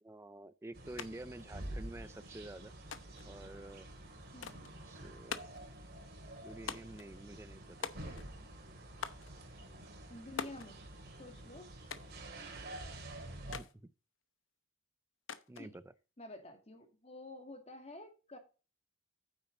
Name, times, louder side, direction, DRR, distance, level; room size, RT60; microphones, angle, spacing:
voice 1, 0.0-2.7 3.2-3.9 4.9-5.4 6.4-7.9 13.5-13.9 15.5-15.8, right 1 dB, 15° right, 0.5 m, -49 dB
sound 1, 0.7-13.6, right 1 dB, 50° right, 2.8 m, -49 dB
sound 2, 1.0-1.1 1.4-2.1 2.9-3.3 4.4-4.7 5.3-5.7 6.7-7.1 7.8-8.4 9.0-9.3 10.4-10.7 11.9-12.2 13.5-13.7 15.3-15.7, left 6 dB, 70° left, 0.9 m, -43 dB
voice 2, 10.1-10.8 11.2-11.7 15.6-15.7 16.2-18.4, left 2 dB, 35° left, 2.2 m, -50 dB
9.2 x 8.1 x 3.9 m
head